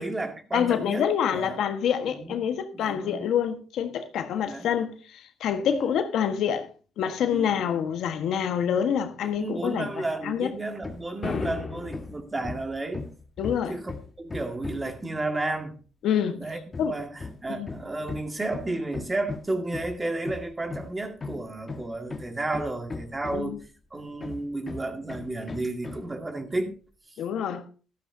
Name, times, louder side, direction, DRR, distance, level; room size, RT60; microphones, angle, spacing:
voice 1, 0.0-1.7 2.2-2.5 2.7-3.3 4.5-4.7 5.6-5.9 7.3-7.5 9.3-13.1 13.7-15.8 16.4-16.6 16.9-23.6 23.9-26.7, right 2 dB, 20° right, 2.1 m, -32 dB
voice 2, 0.5-6.7 7.0-10.5 13.4-13.8 16.0-16.4 16.8-16.9 17.5-17.8 23.3-23.6 27.2-27.7, left 8 dB, 80° left, 1.4 m, -27 dB
Hammer, 10.8-11.1 11.4-15.0 16.7-23.7 24.2-26.1, left 3 dB, 30° left, 1.6 m, -38 dB
sound 1, 11.2-12.2, left 5 dB, 45° left, 1.6 m, -33 dB
13.5 x 13.0 x 2.8 m
cardioid pair, 90°, 0 cm